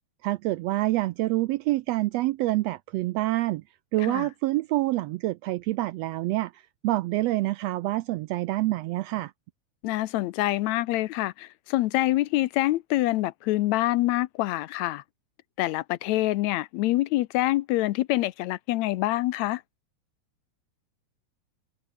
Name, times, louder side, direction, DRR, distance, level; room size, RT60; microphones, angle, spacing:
voice 1, 0.2-3.6 3.9-9.3, right 18 dB, 80° right, 1.5 m, -27 dB
voice 2, 9.8-15.0 15.6-19.6, left 17 dB, 75° left, 1.9 m, -26 dB
omnidirectional pair, 3.4 m